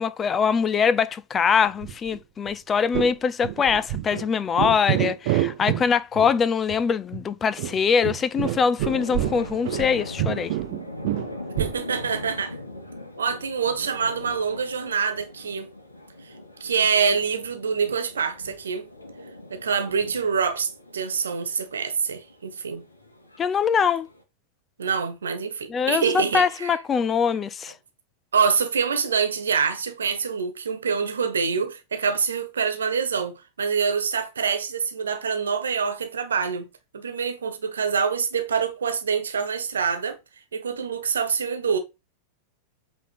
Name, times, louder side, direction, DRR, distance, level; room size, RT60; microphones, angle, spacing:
voice 1, 0.0-10.5 23.4-24.1 25.7-27.7, left 6 dB, 20° left, 0.5 m, -23 dB
sound 1, 1.8-2.2 2.5-2.6 2.9-3.1 3.4-4.3 4.6-5.9 6.1-6.3 6.7-6.8 7.1-7.2 7.6-9.9 10.2-11.8, right 13 dB, 50° right, 0.8 m, -27 dB
sound 2, 7.9-24.2, left 1 dB, 80° left, 1.6 m, -40 dB
voice 2, 11.6-12.6 13.2-15.7 16.2-16.3 16.6-18.9 19.5-22.8 24.8-26.7 28.3-36.7 36.9-40.2 40.5-41.8, right 6 dB, 70° right, 1.3 m, -25 dB
8.1 x 3.8 x 4.2 m
figure-of-eight pair, 90°, 0 cm